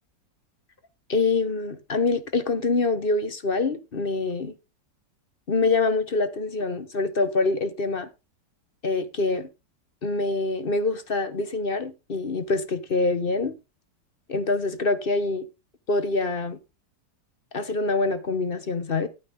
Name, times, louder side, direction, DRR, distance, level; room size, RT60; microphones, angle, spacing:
voice 1, 1.1-4.5 5.5-8.1 8.8-9.5 10.0-13.5 14.3-15.5 15.9-16.6 17.5-19.1, left 3 dB, 35° left, 1.1 m, -25 dB
11.5 x 9.2 x 3.8 m
omnidirectional pair, 1.9 m